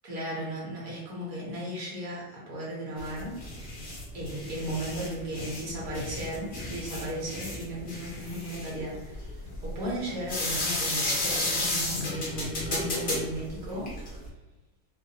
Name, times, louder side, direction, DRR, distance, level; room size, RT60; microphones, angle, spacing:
voice 1, 0.0-3.3 4.1-13.9, right 1 dB, 60° right, -5 dB, 1.3 m, -35 dB
sound 1, 3.0-14.3, left 2 dB, 20° left, 0.5 m, -33 dB
2.6 x 2.1 x 2.7 m, 1.0 s
supercardioid pair, 155°, 46 cm